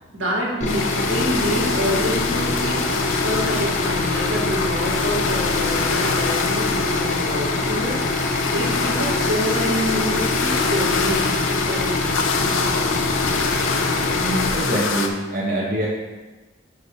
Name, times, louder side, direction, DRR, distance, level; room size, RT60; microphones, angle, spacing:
voice 1, 0.0-8.1 8.5-12.7, equal, 70° right, -4 dB, 1.8 m, -27 dB
sound 1, 0.6-14.5, left 2 dB, 35° left, 0.6 m, -25 dB
sound 2, 0.7-15.1, left 4 dB, 90° left, 0.6 m, -25 dB
voice 2, 14.2-15.9, right 1 dB, 40° right, -5 dB, 0.9 m, -24 dB
6.9 x 3.2 x 5.5 m, 1.2 s
head